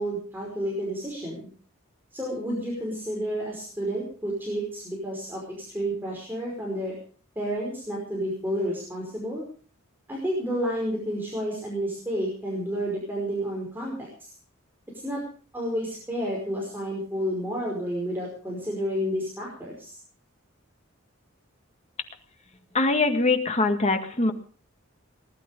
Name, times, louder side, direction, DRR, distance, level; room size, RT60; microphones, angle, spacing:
voice 1, 0.0-1.5 2.1-6.9 7.4-9.4 10.1-14.1 15.0-15.2 15.5-19.9, equal, 10° right, -3 dB, 5.2 m, -30 dB
voice 2, 22.7-24.3, left 3 dB, 30° left, 6 dB, 1.9 m, -22 dB
20.0 x 12.0 x 5.3 m, 0.42 s
head